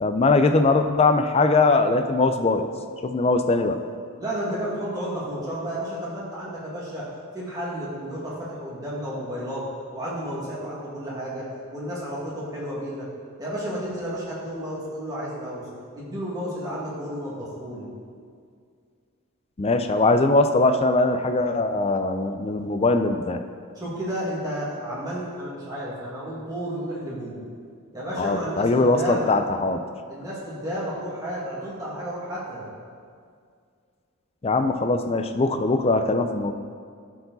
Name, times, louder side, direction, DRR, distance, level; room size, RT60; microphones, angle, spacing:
voice 1, 0.0-2.7 3.0-3.8 19.6-23.4 28.2-29.8 34.4-36.5, left 3 dB, 25° left, 8 dB, 0.4 m, -21 dB
voice 2, 4.2-7.1 7.3-9.7 9.9-13.1 13.4-15.7 15.9-17.9 23.8-27.4 27.9-29.3 30.1-32.7, equal, 15° right, -7 dB, 2.0 m, -32 dB
13.0 x 4.7 x 4.0 m, 2.2 s
head